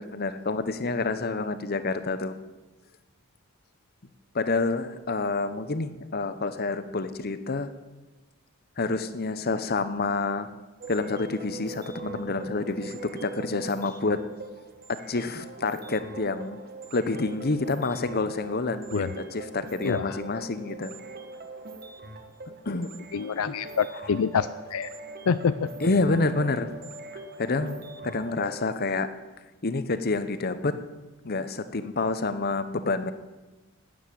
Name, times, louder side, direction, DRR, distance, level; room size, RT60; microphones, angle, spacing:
voice 1, 0.0-2.4 4.3-7.7 8.8-10.5 10.9-14.2 14.9-16.6 16.9-20.9 22.7-22.9 23.5-23.6 25.8-26.7 27.4-29.1 29.6-30.7 31.2-33.1, left 3 dB, 45° left, 11 dB, 0.9 m, -28 dB
sound 1, 10.8-28.6, right 3 dB, 45° right, 1.3 m, -42 dB
voice 2, 19.8-20.2 23.1-24.9 25.3-25.7, left 6 dB, 70° left, 13 dB, 0.5 m, -26 dB
12.5 x 9.5 x 8.6 m, 1.2 s
head